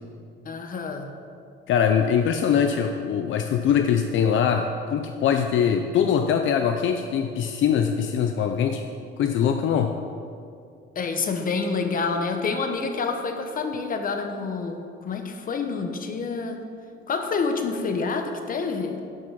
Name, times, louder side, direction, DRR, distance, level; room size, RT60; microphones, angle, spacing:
voice 1, 0.4-1.1 10.9-16.6 17.1-19.0, left 4 dB, 45° left, 5 dB, 1.1 m, -28 dB
voice 2, 1.7-8.9 9.2-9.9, left 7 dB, 70° left, 6 dB, 0.6 m, -22 dB
12.0 x 6.0 x 6.0 m, 2.4 s
cardioid pair, 115°, 21 cm